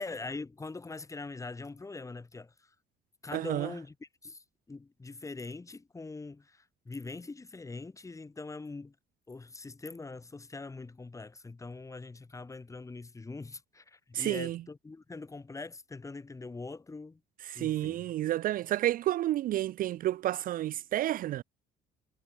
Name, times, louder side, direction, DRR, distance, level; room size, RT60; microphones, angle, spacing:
voice 1, 0.0-2.7 3.2-8.9 9.3-17.2 17.5-18.1, left 3 dB, 20° left, 3.3 m, -43 dB
voice 2, 3.3-3.7 14.1-14.6 17.5-21.4, right 13 dB, 55° right, 0.4 m, -30 dB
cardioid pair, 110°, 17 cm